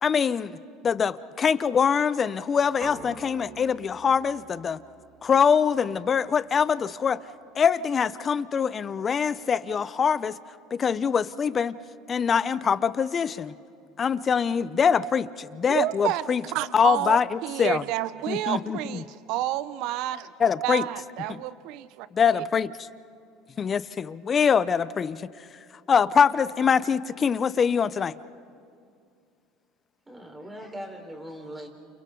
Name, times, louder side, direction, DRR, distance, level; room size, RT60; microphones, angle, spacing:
voice 1, 0.0-0.6 0.8-4.8 5.2-7.2 7.6-10.4 10.7-11.8 12.1-13.5 14.0-16.4 16.7-17.8 18.3-19.0 20.4-20.8 22.1-22.7 23.6-25.3 25.9-28.1, left 6 dB, 30° left, 16 dB, 0.7 m, -24 dB
sound 1, 2.8-6.8, right 3 dB, 30° right, 2.7 m, -46 dB
voice 2, 15.7-20.3 20.6-22.1 22.3-22.4, right 14 dB, 65° right, 15 dB, 0.6 m, -30 dB
voice 3, 30.1-31.7, equal, 15° right, 2 dB, 4.4 m, -40 dB
30.0 x 28.5 x 3.9 m, 2.4 s
supercardioid pair, 105°, 0 cm